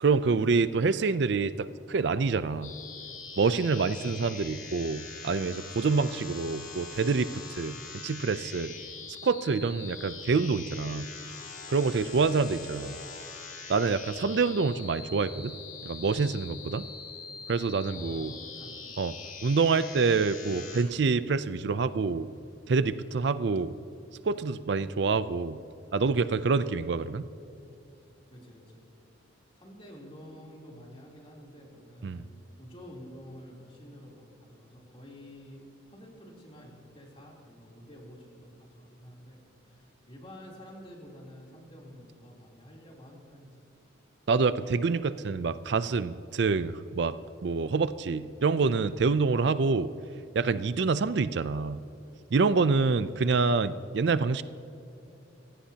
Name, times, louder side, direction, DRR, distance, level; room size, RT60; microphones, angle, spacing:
voice 1, 0.0-2.7 3.4-7.8 8.0-8.7 9.2-11.1 11.7-13.0 13.7-15.5 15.8-16.9 17.5-18.3 19.0-19.1 19.4-22.3 22.7-23.7 24.2-25.6 25.9-27.2 32.0-32.2 44.3-47.2 47.4-49.9 50.4-51.8 52.3-54.4, right 4 dB, 60° right, 14 dB, 0.4 m, -26 dB
sound 1, 2.6-20.8, left 5 dB, 90° left, 2.8 m, -43 dB
voice 2, 17.9-19.0 28.3-28.8 29.6-35.6 35.9-43.5, equal, 30° left, -2 dB, 3.3 m, -49 dB
26.0 x 16.0 x 2.9 m, 2.7 s
head